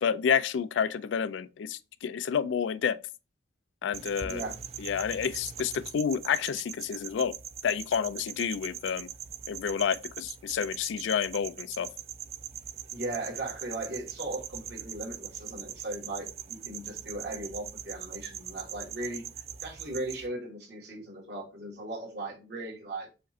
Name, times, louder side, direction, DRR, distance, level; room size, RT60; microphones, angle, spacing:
voice 1, 0.0-3.0 3.8-4.4 4.8-7.3 7.6-9.1 9.5-11.9, left 7 dB, 90° left, 0.3 m, -29 dB
sound 1, 3.9-20.3, right 9 dB, 35° right, 0.3 m, -42 dB
voice 2, 4.2-4.5 12.9-19.2 19.6-23.1, right 2 dB, 65° right, 1.6 m, -37 dB
5.1 x 2.5 x 4.1 m
head